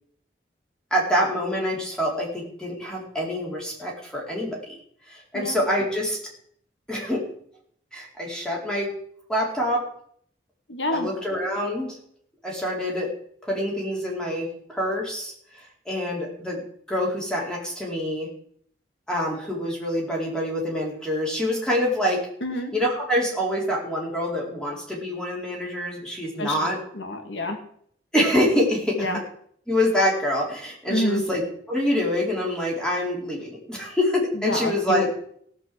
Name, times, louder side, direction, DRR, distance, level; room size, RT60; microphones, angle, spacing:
voice 1, 0.9-4.7 5.1-6.2 6.9-7.2 7.9-8.9 9.3-9.8 10.9-12.0 12.4-13.1 13.4-16.6 16.9-18.3 19.1-22.3 22.7-26.8 28.1-29.1 29.7-31.4 31.7-35.1, equal, 5° left, -3 dB, 4.4 m, -26 dB
voice 2, 10.7-11.1 22.4-22.7 26.4-26.6 26.9-27.6 29.0-29.2 30.9-31.2 34.4-35.1, left 1 dB, 85° left, 5 dB, 2.0 m, -27 dB
17.0 x 6.0 x 7.8 m, 0.64 s
head